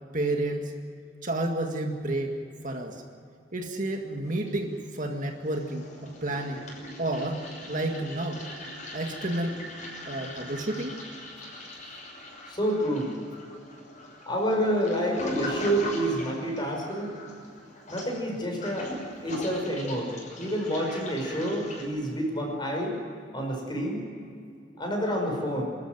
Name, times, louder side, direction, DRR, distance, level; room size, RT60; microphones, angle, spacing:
voice 1, 0.1-0.7 1.2-2.3 2.6-3.0 3.5-6.6 7.0-7.4 7.7-8.4 8.9-9.6 10.1-11.0, right 1 dB, 45° right, 3 dB, 1.9 m, -30 dB
Toilet flush, 4.2-5.1 5.4-21.8, left 1 dB, 40° left, 6.4 m, -41 dB
voice 2, 12.5-13.1 14.3-17.1 17.9-18.9 19.2-23.0 23.3-24.0 24.8-25.6, equal, 25° left, 1 dB, 5.6 m, -28 dB
25.5 x 13.5 x 9.3 m, 2.4 s
head